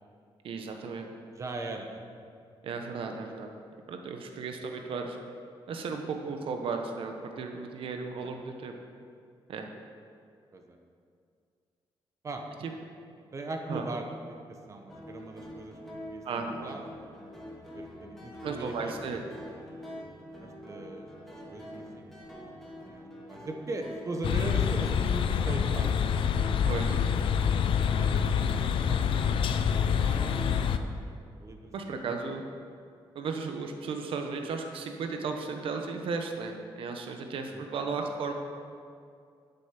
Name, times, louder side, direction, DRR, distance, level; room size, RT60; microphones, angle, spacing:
voice 1, 0.4-1.1 2.6-3.5 3.9-5.2 5.7-8.7 9.5-9.7 12.6-12.7 13.7-13.8 16.2-16.8 18.4-19.2 26.6-27.0 31.7-32.4 33.1-38.3, right 4 dB, 70° right, 4 dB, 1.1 m, -35 dB
voice 2, 1.4-2.0 4.3-4.4 8.2-8.3 10.5-10.8 12.2-12.4 13.3-17.1 17.6-19.2 20.4-21.1 21.5-22.1 22.3-26.1 28.0-30.7 31.0-31.7 32.0-32.4 37.5-37.9, right 2 dB, 35° right, 3 dB, 1.1 m, -40 dB
sound 1, 14.9-30.8, left 1 dB, 5° left, 2.4 m, -45 dB
sound 2, 24.2-30.8, left 7 dB, 70° left, 0.5 m, -26 dB
10.0 x 8.2 x 5.9 m, 2.3 s
wide cardioid pair, 165°, 9 cm